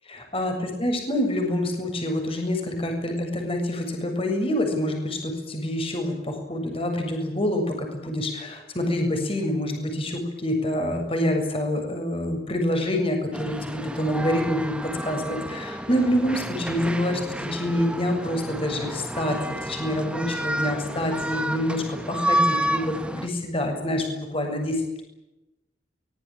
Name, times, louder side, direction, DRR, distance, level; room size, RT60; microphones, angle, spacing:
voice 1, 0.1-25.0, left 1 dB, 30° left, 4 dB, 7.2 m, -27 dB
sound 1, 13.3-23.3, right 1 dB, 5° right, 1.6 m, -30 dB
24.5 x 21.5 x 9.1 m, 0.94 s
head